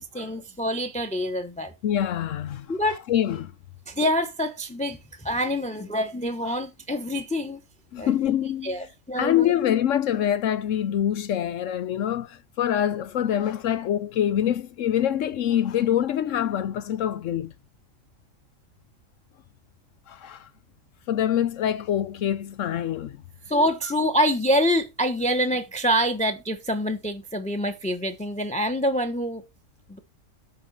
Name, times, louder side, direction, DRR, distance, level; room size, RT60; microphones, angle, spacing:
voice 1, 0.0-1.7 2.7-3.0 3.9-7.6 8.0-8.1 8.6-9.5 23.5-29.4 29.9-30.0, equal, 5° left, 1.0 m, -26 dB
voice 2, 1.8-2.7 3.1-3.5 6.4-6.6 7.9-8.9 9.2-17.5 20.1-20.5 21.1-23.2, left 10 dB, 75° left, 1.0 m, -25 dB
8.1 x 5.5 x 6.7 m
omnidirectional pair, 1.3 m